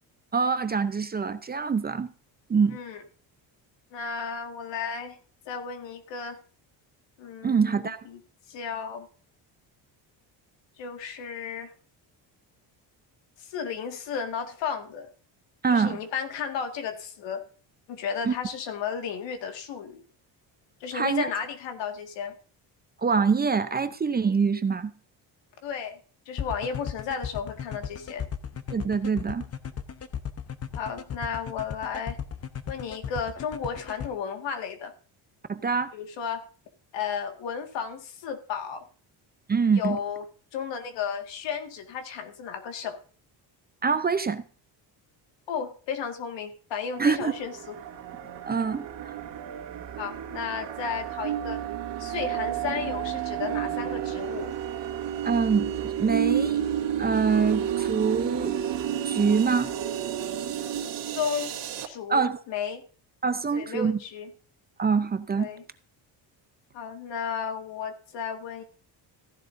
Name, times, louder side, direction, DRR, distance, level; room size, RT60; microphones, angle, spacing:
voice 1, 0.3-2.1 2.5-2.8 7.4-8.1 15.6-16.0 18.2-18.3 20.9-21.3 23.0-24.9 28.7-29.4 35.5-35.9 39.5-40.0 43.8-44.4 47.0-47.3 48.4-49.2 55.2-56.6 57.0-58.6 59.0-59.7 62.1-62.4 63.2-64.0 64.8-65.5, right 5 dB, 20° right, 0.6 m, -25 dB
voice 2, 2.7-3.0 3.9-5.2 5.5-6.4 7.2-8.2 8.5-9.1 10.8-11.7 13.4-15.1 15.7-17.4 17.9-20.0 20.8-22.4 25.6-26.0 26.3-28.3 30.7-32.2 32.7-34.9 35.9-36.5 36.9-38.9 39.8-40.2 40.5-43.0 45.5-47.8 50.0-51.6 52.0-54.6 61.2-61.6 61.9-62.8 63.5-64.3 65.4-65.6 66.7-68.6, left 7 dB, 75° left, 2.0 m, -33 dB
sound 1, 26.4-34.1, left 8 dB, 35° left, 0.9 m, -35 dB
sound 2, 46.9-61.9, right 10 dB, 75° right, 1.8 m, -31 dB
15.0 x 11.0 x 2.6 m
cardioid pair, 130°, 44 cm